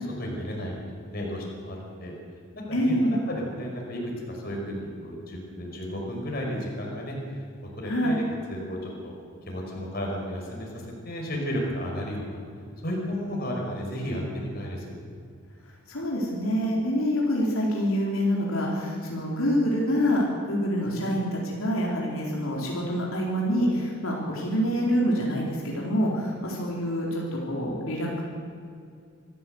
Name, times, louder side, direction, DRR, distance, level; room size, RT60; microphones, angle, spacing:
voice 1, 0.2-2.1 2.5-7.2 7.8-8.2 8.5-9.1 9.5-12.4 12.8-14.9 20.8-20.9, equal, 45° left, -1 dB, 5.4 m, -33 dB
voice 2, 2.7-3.2 7.8-8.2 15.9-28.2, equal, 75° left, -3 dB, 4.1 m, -26 dB
25.0 x 15.0 x 8.0 m, 2.3 s
head